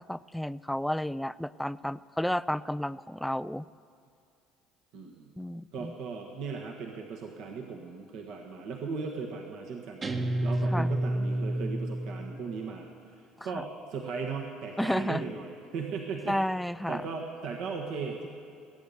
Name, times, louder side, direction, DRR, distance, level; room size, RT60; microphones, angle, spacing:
voice 1, 0.0-3.6 5.4-5.9 10.7-10.9 13.5-13.6 14.8-15.2 16.3-17.0, left 1 dB, 5° left, 17 dB, 0.4 m, -31 dB
voice 2, 4.9-5.3 5.7-18.3, right 5 dB, 65° right, 1 dB, 1.5 m, -37 dB
Guitar, 10.0-12.6, right 1 dB, 35° right, 1.2 m, -30 dB
21.0 x 9.1 x 6.9 m, 2.6 s
hypercardioid pair, 65°, 0 cm